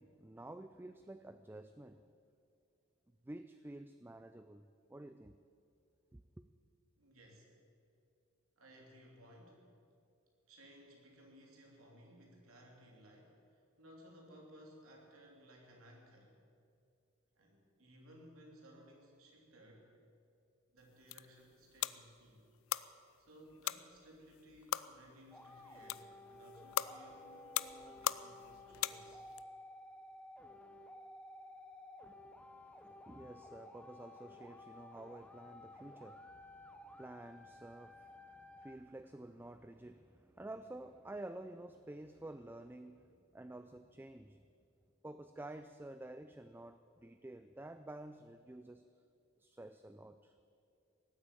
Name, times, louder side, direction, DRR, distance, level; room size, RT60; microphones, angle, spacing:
voice 1, 0.0-2.0 3.2-5.4 6.1-6.5 32.6-44.5 45.0-48.8 49.4-50.3, right 1 dB, 10° right, 10 dB, 0.3 m, -51 dB
voice 2, 7.0-7.5 8.6-9.6 10.5-16.4 17.4-19.9 20.7-22.5 23.2-29.2, equal, 85° right, 0 dB, 3.1 m, -59 dB
sound 1, 20.8-29.4, left 12 dB, 75° left, 0.4 m, -42 dB
sound 2, 25.3-38.8, left 1 dB, 5° left, 0.8 m, -55 dB
18.0 x 8.4 x 8.9 m, 2.5 s
head